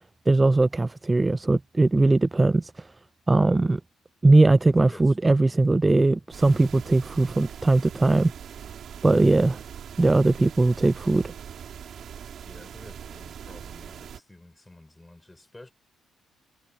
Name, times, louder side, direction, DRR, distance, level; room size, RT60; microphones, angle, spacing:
voice 1, 0.3-2.9 3.3-3.8 4.2-8.3 9.0-9.6 10.0-11.3, right 2 dB, 20° right, 0.3 m, -20 dB
voice 2, 4.6-5.2 12.4-15.7, left 2 dB, 15° left, 7.9 m, -50 dB
sound 1, 6.3-14.2, right 8 dB, 60° right, 5.5 m, -41 dB
cardioid pair, 90°, 0 cm